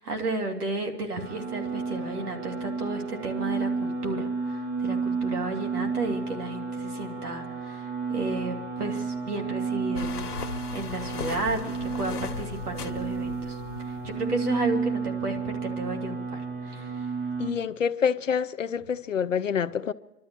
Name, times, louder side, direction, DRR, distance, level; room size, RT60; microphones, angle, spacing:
voice 1, 0.0-17.1, right 2 dB, 65° right, 2.8 m, -33 dB
sound 1, 1.2-17.5, right 5 dB, 30° right, 1.8 m, -32 dB
sound 2, 10.0-14.3, left 6 dB, 70° left, 1.3 m, -37 dB
voice 2, 17.4-19.9, left 7 dB, 55° left, 0.6 m, -27 dB
24.0 x 12.5 x 4.5 m
hypercardioid pair, 170°, 48 cm